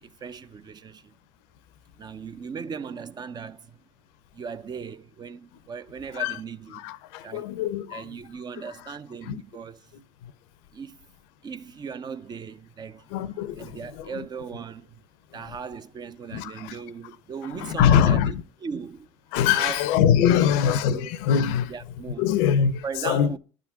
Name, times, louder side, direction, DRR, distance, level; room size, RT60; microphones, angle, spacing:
voice 1, 0.0-1.1 2.0-3.8 4.3-7.0 7.2-7.5 7.9-9.9 10.7-11.0 11.4-13.2 13.6-15.0 15.3-19.1 19.5-20.6 20.9-21.2 21.7-22.3 22.8-23.4, right 6 dB, 30° right, 0.5 m, -38 dB
voice 2, 6.7-8.0 9.3-9.4 10.2-10.3 13.1-14.1 16.3-16.7 17.5-18.3 19.3-21.7 22.2-23.3, left 8 dB, 75° left, 0.6 m, -23 dB
10.5 x 3.8 x 5.7 m
hypercardioid pair, 80°, 13 cm